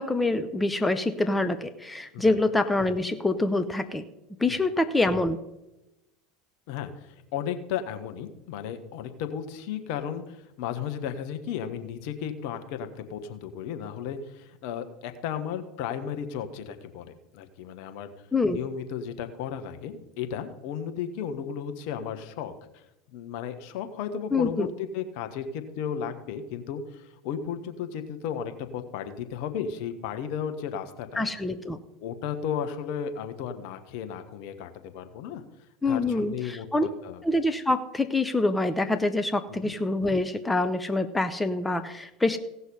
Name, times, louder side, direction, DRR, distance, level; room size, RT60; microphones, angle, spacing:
voice 1, 0.0-4.1 4.4-5.4 18.3-18.6 24.3-24.7 31.2-31.8 35.8-36.9 37.2-42.4, left 2 dB, 10° left, 9 dB, 0.8 m, -26 dB
voice 2, 6.7-18.1 18.5-22.8 23.1-31.2 32.0-35.4 35.9-37.2 39.5-39.7, left 8 dB, 60° left, 8 dB, 1.2 m, -34 dB
16.5 x 6.3 x 5.4 m, 0.92 s
figure-of-eight pair, 75°, 0 cm